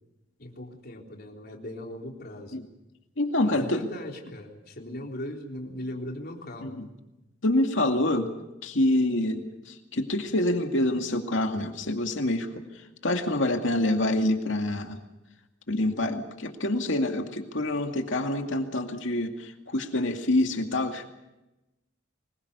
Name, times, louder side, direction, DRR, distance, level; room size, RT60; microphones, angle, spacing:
voice 1, 0.4-2.6 3.4-6.8, left 1 dB, 55° left, 1 dB, 3.9 m, -39 dB
voice 2, 3.2-3.9 6.6-6.9 7.4-8.3 8.6-12.5 13.0-15.0 15.7-21.1, left 1 dB, 70° left, 4 dB, 2.3 m, -26 dB
25.0 x 21.5 x 6.8 m, 0.98 s
head